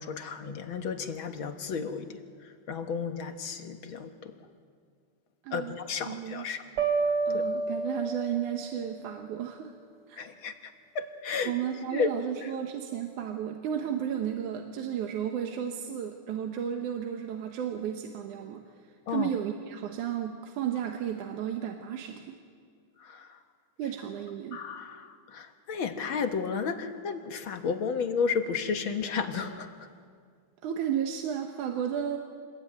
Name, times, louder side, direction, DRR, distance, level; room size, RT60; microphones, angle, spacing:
voice 1, 0.0-4.3 5.5-6.6 7.3-7.4 10.2-11.5 11.9-12.1 19.1-19.3 23.0-23.4 24.5-29.9, left 6 dB, 55° left, 7 dB, 1.6 m, -33 dB
voice 2, 5.4-5.8 6.1-6.5 7.3-9.7 10.1-10.2 11.5-22.4 23.8-24.6 30.6-32.2, right 9 dB, 75° right, 3 dB, 2.7 m, -33 dB
sound 1, 6.8-8.7, right 4 dB, 45° right, 3.6 m, -29 dB
26.5 x 20.5 x 9.4 m, 2.1 s
omnidirectional pair, 3.6 m